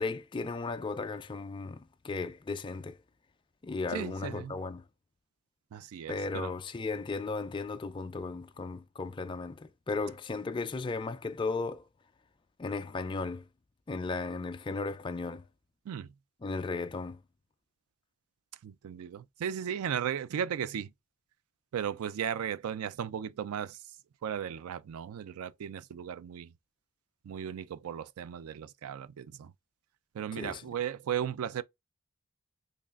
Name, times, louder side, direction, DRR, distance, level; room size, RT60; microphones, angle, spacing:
voice 1, 0.0-3.0 3.6-4.8 6.1-11.8 12.6-13.4 13.9-15.4 16.4-17.2 30.4-30.6, left 3 dB, 20° left, 0.3 m, -35 dB
voice 2, 3.9-4.6 5.7-6.5 15.9-16.1 18.6-20.9 21.7-23.8 24.2-26.5 27.3-29.5 30.1-31.6, right 8 dB, 75° right, 0.3 m, -36 dB
3.8 x 3.2 x 2.3 m
head